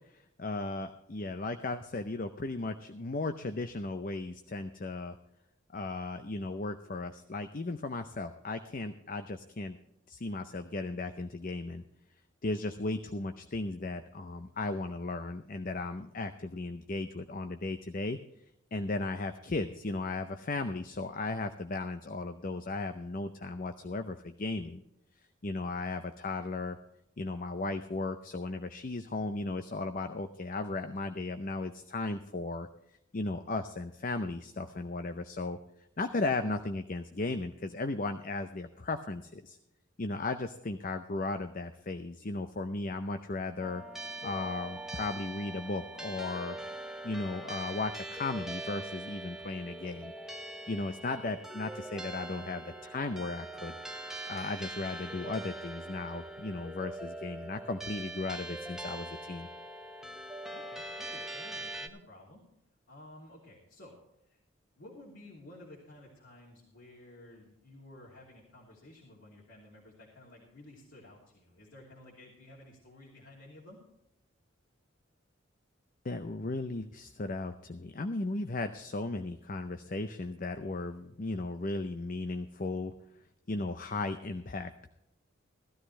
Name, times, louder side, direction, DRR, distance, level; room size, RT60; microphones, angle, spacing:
voice 1, 0.1-5.2 5.7-9.8 10.1-11.8 12.4-18.2 18.7-24.8 25.4-26.8 27.2-32.7 33.1-35.6 36.0-39.6 40.0-43.8 44.2-46.6 47.0-50.1 50.7-53.8 54.3-59.5 76.0-82.9 83.5-84.9, left 2 dB, 40° left, 8 dB, 0.6 m, -36 dB
sound 1, 43.6-61.9, right 1 dB, ahead, 0.9 m, -42 dB
voice 2, 60.5-62.4 62.9-64.0 64.2-64.4 64.8-73.8, left 1 dB, 60° left, -4 dB, 2.8 m, -53 dB
16.0 x 13.0 x 3.2 m, 0.85 s
head